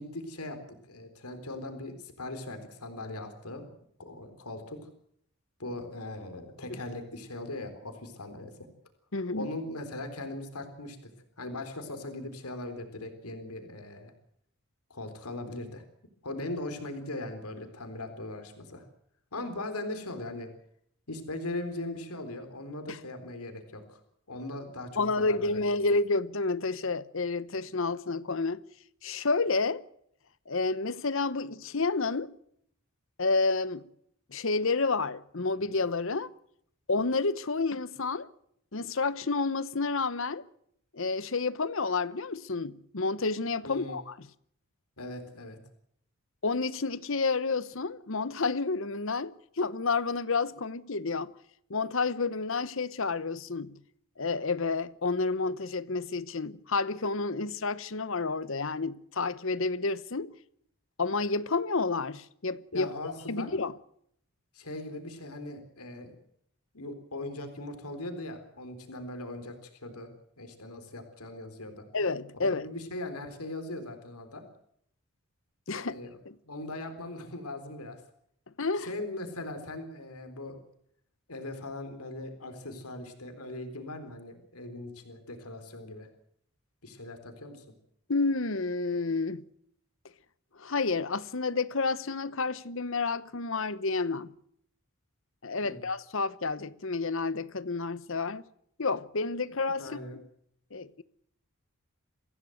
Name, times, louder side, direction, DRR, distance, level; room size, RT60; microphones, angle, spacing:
voice 1, 0.0-3.7 4.0-4.9 5.6-8.7 9.3-11.1 11.4-14.1 14.9-15.8 16.2-18.8 19.3-20.5 21.1-24.0 24.3-25.6 43.6-44.0 45.0-45.6 62.7-63.5 64.5-66.2 66.7-70.1 70.4-71.9 72.4-74.4 75.7-76.2 76.4-78.0 78.8-80.6 81.3-86.1 86.8-87.7 95.6-95.9 99.8-100.2, left 2 dB, 90° left, 3.9 m, -39 dB
voice 2, 9.1-9.5 22.9-23.0 25.0-28.6 29.0-29.8 30.5-32.3 33.2-33.9 34.3-36.3 36.9-38.3 38.7-40.4 40.9-44.1 46.4-51.3 51.7-53.8 54.2-60.4 61.0-63.7 71.9-72.7 75.7-75.9 76.3-76.4 78.6-78.9 88.1-89.4 90.6-94.3 95.4-98.4 98.8-100.2 100.7-101.0, left 3 dB, 60° left, 1.0 m, -30 dB
24.0 x 16.0 x 7.9 m
head